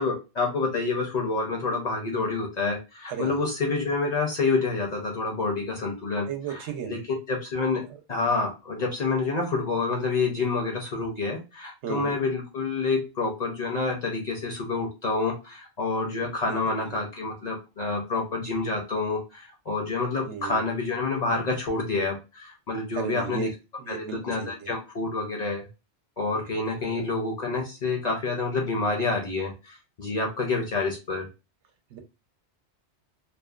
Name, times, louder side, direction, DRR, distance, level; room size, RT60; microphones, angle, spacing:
voice 1, 0.0-7.0 7.3-7.8 8.1-23.5 23.9-25.7 26.2-31.3, left 3 dB, 50° left, 1 dB, 0.5 m, -28 dB
voice 2, 6.3-7.0 11.8-12.2 16.5-16.6 16.9-17.0 20.2-20.6 22.9-23.5 23.8-24.7 26.8-27.0 31.9-32.0, right 8 dB, 80° right, 5 dB, 0.9 m, -35 dB
2.6 x 2.1 x 2.3 m, 0.28 s
omnidirectional pair, 1.2 m